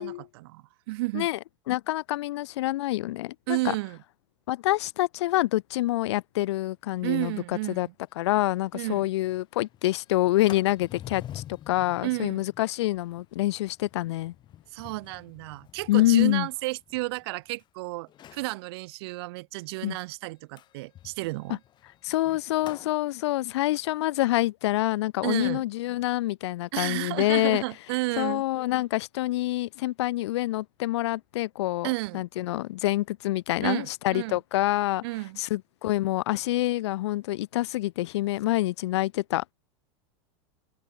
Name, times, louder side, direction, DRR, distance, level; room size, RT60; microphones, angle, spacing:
voice 1, 0.0-1.3 3.5-4.0 7.0-7.9 8.7-9.1 12.0-12.4 14.7-21.6 25.2-25.6 26.7-28.4 31.8-32.2 33.6-34.4 35.0-35.4, right 22 dB, 65° right, 1.7 m, -32 dB
voice 2, 1.7-3.7 4.5-7.3 7.7-7.9 8.2-14.3 15.9-16.5 19.8-20.0 22.0-27.6 28.2-35.0 35.4-39.5, left 16 dB, 80° left, 0.6 m, -26 dB
Sliding door, 8.1-8.2 8.5-8.6 9.0-9.3 9.6-17.6 18.1-18.6 20.6-22.9, left 12 dB, 30° left, 1.8 m, -48 dB
open air
supercardioid pair, 130°, 14 cm